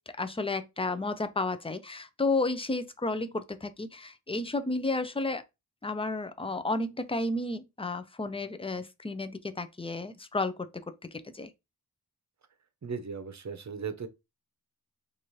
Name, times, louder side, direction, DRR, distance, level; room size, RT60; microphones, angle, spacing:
voice 1, 0.2-5.4 5.8-10.7 11.0-11.5, left 2 dB, 15° left, 0.5 m, -32 dB
voice 2, 12.8-14.1, right 5 dB, 45° right, 0.8 m, -37 dB
4.0 x 2.6 x 3.1 m
wide cardioid pair, 55°, 39 cm